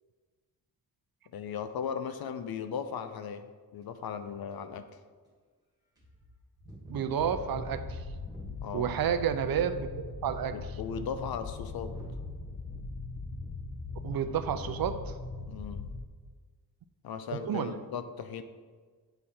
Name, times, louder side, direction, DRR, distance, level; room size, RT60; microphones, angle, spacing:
voice 1, 1.3-4.9 8.6-8.9 10.5-12.0 15.5-15.9 17.0-18.4, left 7 dB, 65° left, 10 dB, 0.7 m, -37 dB
sound 1, 3.8-3.9 4.5-4.6 5.2-5.3 6.0-9.3 9.6-10.1 10.8-14.3 14.6-14.9, right 1 dB, 10° right, 2.0 m, -52 dB
voice 2, 6.9-8.0 8.7-9.9 10.2-10.6 14.0-15.1 17.5-17.8, right 8 dB, 60° right, 10 dB, 0.6 m, -30 dB
sound 2, 7.2-16.0, left 3 dB, 25° left, 0.7 m, -40 dB
9.3 x 4.9 x 4.4 m, 1.5 s
cardioid pair, 100°, 39 cm